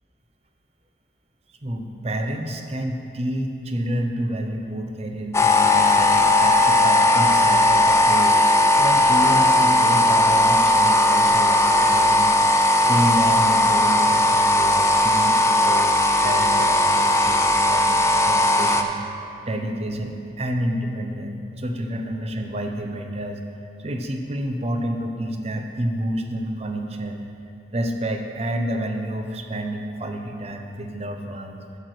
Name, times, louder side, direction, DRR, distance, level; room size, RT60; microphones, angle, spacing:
voice 1, 1.6-8.4 8.7-23.4 23.8-27.2 27.7-31.6, right 1 dB, 35° right, 4 dB, 0.7 m, -29 dB
sound 1, 5.3-18.8, left 1 dB, 15° left, 0.4 m, -17 dB
8.1 x 6.7 x 6.2 m, 2.5 s
head